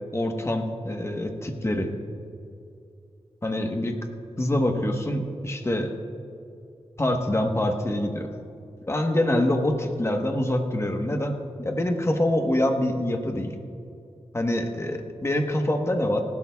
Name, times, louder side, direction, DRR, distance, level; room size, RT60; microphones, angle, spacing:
voice 1, 0.1-1.9 3.4-3.9 4.4-5.9 7.0-8.3 8.9-13.5 14.3-16.2, left 1 dB, 25° left, 3 dB, 1.2 m, -25 dB
30.0 x 12.0 x 2.3 m, 2.6 s
wide cardioid pair, 100°, 11 cm